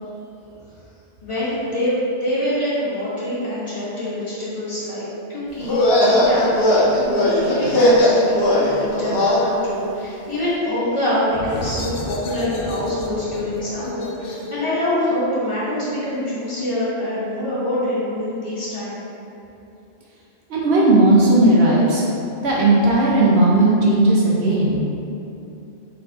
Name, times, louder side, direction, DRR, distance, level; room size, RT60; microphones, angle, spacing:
voice 1, 1.2-19.0, left 1 dB, 25° left, -10 dB, 1.4 m, -25 dB
sound 1, 5.6-9.4, left 1 dB, 60° left, 1.0 m, -17 dB
sound 2, 11.3-16.7, left 1 dB, 90° left, 1.0 m, -34 dB
voice 2, 20.5-22.0 22.4-24.9, right 2 dB, 65° right, -5 dB, 0.9 m, -16 dB
4.2 x 3.2 x 3.9 m, 2.8 s
omnidirectional pair, 1.2 m